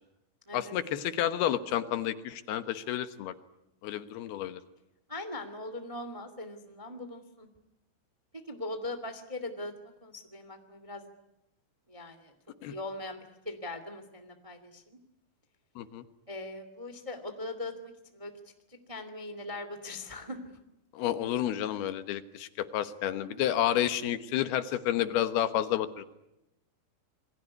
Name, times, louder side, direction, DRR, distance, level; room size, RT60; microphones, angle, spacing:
voice 1, 0.5-3.3 3.8-4.6 12.6-12.7 15.8-16.0 20.9-26.1, left 11 dB, 75° left, 11 dB, 3.1 m, -30 dB
voice 2, 5.1-7.5 8.5-9.7 10.0-11.0 11.9-12.3 12.7-15.0 16.3-17.7 18.1-18.3 18.9-20.4, left 2 dB, 15° right, 8 dB, 1.4 m, -40 dB
28.0 x 21.5 x 9.6 m, 0.89 s
omnidirectional pair, 4.7 m